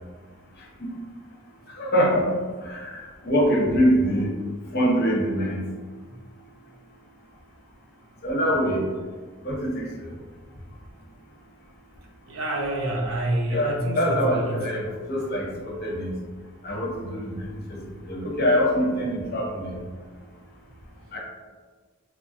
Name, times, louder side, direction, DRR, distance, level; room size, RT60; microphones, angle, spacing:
voice 1, 1.8-4.3 4.7-5.6 8.2-8.8 9.4-10.1 13.5-16.1 16.6-17.8 18.1-19.8 21.1-21.2, equal, 50° left, -2 dB, 0.7 m, -24 dB
voice 2, 12.3-14.7, right 1 dB, 85° right, 0 dB, 0.6 m, -28 dB
3.0 x 2.2 x 2.6 m, 1.5 s
head